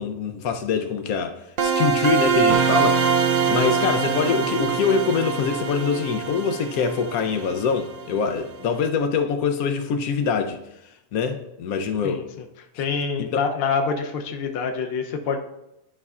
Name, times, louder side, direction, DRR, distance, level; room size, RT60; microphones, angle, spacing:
voice 1, 0.0-1.3 1.6-3.0 3.5-10.6 11.1-12.2 13.2-13.5, left 6 dB, 80° left, 1.1 m, -24 dB
sound 1, 1.6-8.2, right 6 dB, 60° right, 0.6 m, -23 dB
voice 2, 12.8-15.4, left 5 dB, 55° left, 0.8 m, -26 dB
11.5 x 5.3 x 2.4 m
omnidirectional pair, 1.5 m